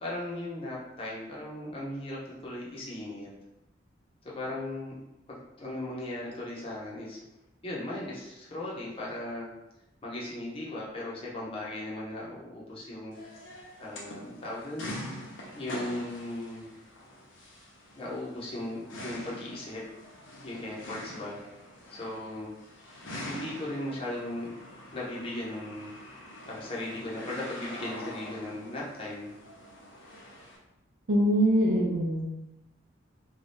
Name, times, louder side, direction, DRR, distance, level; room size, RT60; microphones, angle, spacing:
voice 1, 0.0-3.3 4.2-4.9 5.3-7.2 7.6-9.5 10.0-13.1 13.8-14.9 15.5-16.7 18.0-19.8 20.4-21.4 21.9-22.5 23.2-24.5 24.9-26.2 26.4-29.3, left 1 dB, 30° left, -5 dB, 0.7 m, -37 dB
sound 1, 13.1-30.6, left 1 dB, 80° left, 0.7 m, -44 dB
voice 2, 31.1-32.3, equal, 65° right, -5 dB, 0.5 m, -23 dB
2.6 x 2.3 x 3.3 m, 0.94 s
head